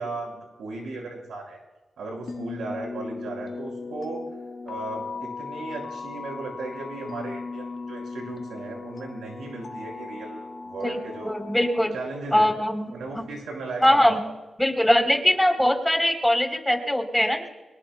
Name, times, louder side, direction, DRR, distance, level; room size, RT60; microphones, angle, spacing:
voice 1, 0.0-1.6 2.0-4.2 4.6-11.3 11.9-12.5 12.9-14.3, right 3 dB, 85° right, 0 dB, 6.4 m, -36 dB
sound 1, 2.3-11.9, left 4 dB, 60° left, 1.8 m, -37 dB
voice 2, 11.2-11.9 12.3-12.9 13.8-14.2 14.6-17.5, equal, 5° left, 3 dB, 4.1 m, -21 dB
24.5 x 20.5 x 2.4 m, 1.2 s
supercardioid pair, 40°, 0 cm